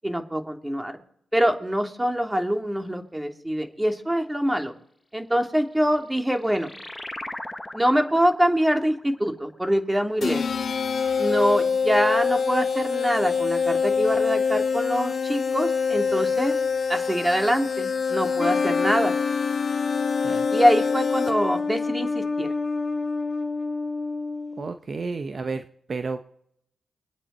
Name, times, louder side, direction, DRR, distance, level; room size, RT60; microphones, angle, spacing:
voice 1, 0.0-1.0 1.3-4.7 5.1-6.7 7.7-10.4 11.2-16.6 16.9-19.1 20.5-22.5, equal, 10° right, 4 dB, 2.4 m, -24 dB
sound 1, 5.8-10.8, left 1 dB, 15° left, 1.2 m, -40 dB
sound 2, 10.2-21.6, left 5 dB, 60° left, 1.3 m, -25 dB
sound 3, 18.4-24.7, left 4 dB, 45° left, 1.4 m, -28 dB
voice 2, 24.6-26.3, right 4 dB, 50° right, 9 dB, 0.8 m, -32 dB
24.5 x 8.7 x 4.3 m, 0.70 s
supercardioid pair, 45°, 0 cm